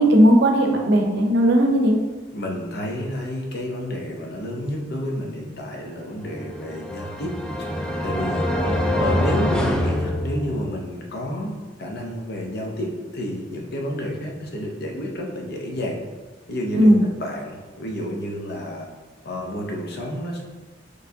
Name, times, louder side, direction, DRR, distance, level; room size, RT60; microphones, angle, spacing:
voice 1, 0.0-2.0 16.7-17.0, equal, 65° right, 1 dB, 0.6 m, -16 dB
voice 2, 2.3-7.3 8.0-8.5 8.9-11.5 11.8-12.9 13.1-16.0 16.5-16.9 17.2-18.8 19.2-20.4, left 1 dB, 60° left, 0 dB, 0.7 m, -30 dB
sound 1, 6.4-10.9, left 1 dB, 5° left, 0.3 m, -25 dB
4.4 x 3.1 x 2.7 m, 1.3 s
head